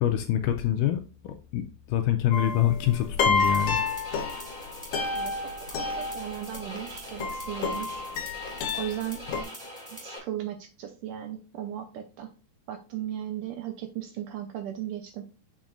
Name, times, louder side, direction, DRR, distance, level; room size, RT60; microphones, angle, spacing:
voice 1, 0.0-3.8, left 11 dB, 80° left, 6 dB, 2.0 m, -26 dB
sound 1, 2.3-9.4, left 4 dB, 65° left, 1.9 m, -30 dB
sound 2, 3.3-10.2, equal, 15° right, 1.8 m, -42 dB
voice 2, 5.1-8.1 8.7-9.2 9.9-12.3 12.7-15.3, right 11 dB, 75° right, 7 dB, 1.9 m, -36 dB
7.2 x 6.0 x 2.5 m, 0.34 s
omnidirectional pair, 4.3 m